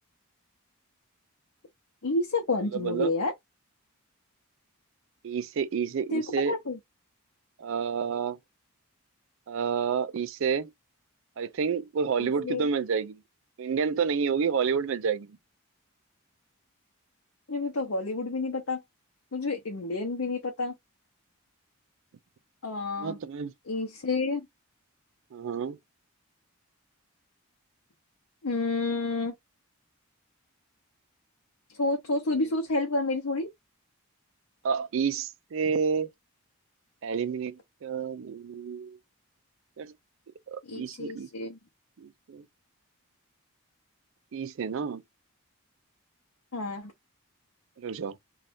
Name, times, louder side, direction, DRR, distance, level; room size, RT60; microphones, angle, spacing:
voice 1, 2.0-3.3 6.1-6.8 12.2-12.7 17.5-18.8 19.3-20.7 22.6-23.2 23.7-24.4 28.4-29.3 31.8-33.5 40.7-41.6 46.5-46.9, left 3 dB, 65° left, 0.7 m, -29 dB
voice 2, 2.7-3.1 5.2-6.6 7.6-8.4 9.5-10.7 11.4-13.2 13.6-15.3 23.0-23.5 25.3-25.8 32.4-32.5 34.6-36.1 37.0-39.0 39.8-39.9 40.5-41.3 42.0-42.4 44.3-45.0 47.8-48.2, right 6 dB, 60° right, 0.4 m, -29 dB
2.6 x 2.3 x 3.4 m
head